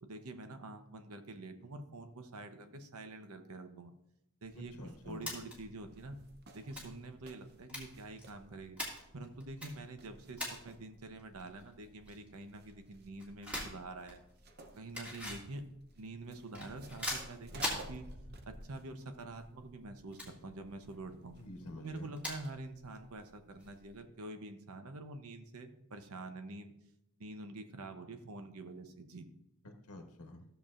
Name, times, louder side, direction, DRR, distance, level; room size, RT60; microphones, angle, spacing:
voice 1, 0.0-3.9 4.4-4.7 5.0-6.2 6.5-8.8 9.1-14.2 14.8-15.6 15.9-18.1 18.5-21.4 21.8-26.7 27.2-29.3, right 2 dB, 80° right, 7 dB, 0.8 m, -46 dB
sound 1, 4.4-24.0, left 1 dB, 5° right, 2.0 m, -47 dB
voice 2, 4.5-5.3 21.4-22.2 29.6-30.5, left 1 dB, 85° left, 4 dB, 1.1 m, -48 dB
sound 2, 4.9-21.6, right 1 dB, 45° right, 0.7 m, -56 dB
14.5 x 6.9 x 2.5 m, 0.82 s
head